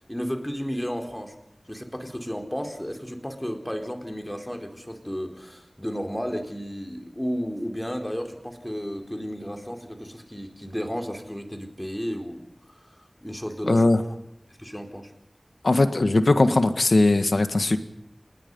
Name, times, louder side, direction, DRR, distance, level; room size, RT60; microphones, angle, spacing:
voice 1, 0.1-1.4 1.7-14.2 14.6-15.1, equal, 10° left, 4 dB, 4.2 m, -33 dB
voice 2, 13.7-14.0 15.6-17.8, left 2 dB, 85° left, 9 dB, 1.7 m, -19 dB
29.0 x 19.5 x 5.5 m, 0.79 s
wide cardioid pair, 50°, 0 cm